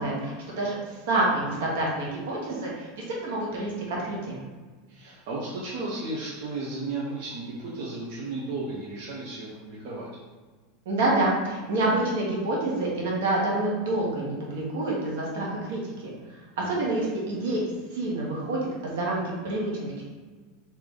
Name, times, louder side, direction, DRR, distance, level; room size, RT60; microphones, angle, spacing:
voice 1, 0.0-2.9 3.2-4.4 10.8-15.9 16.6-17.6 17.9-20.0, right 2 dB, 75° right, -4 dB, 1.2 m, -27 dB
voice 2, 4.9-10.1 16.6-16.9, right 2 dB, 50° right, -6 dB, 0.7 m, -34 dB
3.3 x 2.8 x 3.7 m, 1.4 s
supercardioid pair, 180°, 0 cm